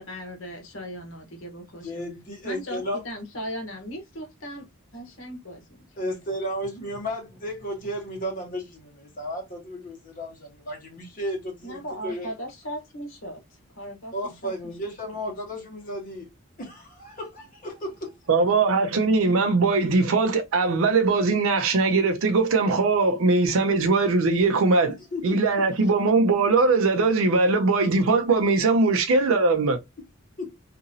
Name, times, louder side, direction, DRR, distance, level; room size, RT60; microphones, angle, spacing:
voice 1, 0.0-2.0 2.4-5.6 5.9-6.0 11.6-13.4 13.8-14.1 14.4-14.5, equal, 65° left, 1.1 m, -37 dB
voice 2, 1.8-3.0 6.0-12.3 14.1-16.3 16.6-18.1 25.1-25.4 30.4-30.5, equal, 40° left, 1.3 m, -33 dB
voice 3, 18.3-24.9 25.2-29.8, right 3 dB, 70° right, 0.5 m, -21 dB
2.8 x 2.5 x 2.6 m
head